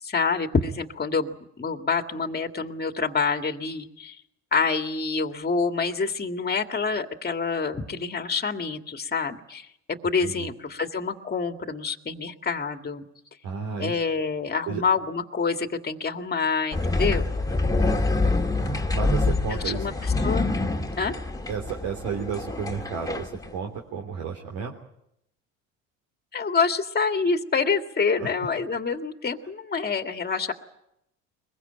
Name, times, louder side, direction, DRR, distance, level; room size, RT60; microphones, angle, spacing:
voice 1, 0.0-4.2 4.5-13.0 13.8-17.3 19.5-20.5 21.0-21.1 26.3-30.5, left 5 dB, 25° left, 7 dB, 2.2 m, -27 dB
voice 2, 13.4-13.9 14.7-14.8 17.8-18.3 18.9-19.9 21.5-24.7 28.2-28.3, right 6 dB, 65° right, 1 dB, 3.3 m, -32 dB
sound 1, 16.7-23.5, left 2 dB, 10° left, 2.1 m, -26 dB
22.5 x 21.5 x 9.1 m, 0.79 s
hypercardioid pair, 70°, 37 cm